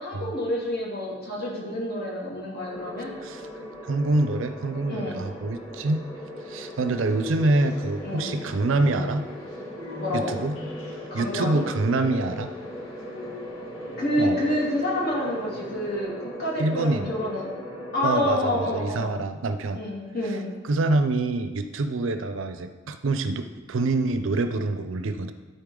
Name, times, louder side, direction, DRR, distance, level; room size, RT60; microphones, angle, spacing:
voice 1, 0.0-3.1 4.9-5.2 8.0-8.3 10.0-10.3 11.1-11.6 14.0-16.1 16.4-17.5 17.9-19.1 19.7-20.5, left 1 dB, 55° left, -4 dB, 2.2 m, -28 dB
sound 1, 2.6-18.8, left 1 dB, 20° left, 2.2 m, -39 dB
voice 2, 3.8-6.0 6.5-9.3 10.1-10.6 11.1-12.5 14.2-14.4 16.6-17.1 18.0-19.8 20.6-25.3, right 2 dB, 70° right, 9 dB, 0.5 m, -26 dB
sound 2, 6.9-16.0, left 1 dB, 85° left, 1.5 m, -43 dB
12.5 x 4.2 x 3.7 m, 1.2 s
head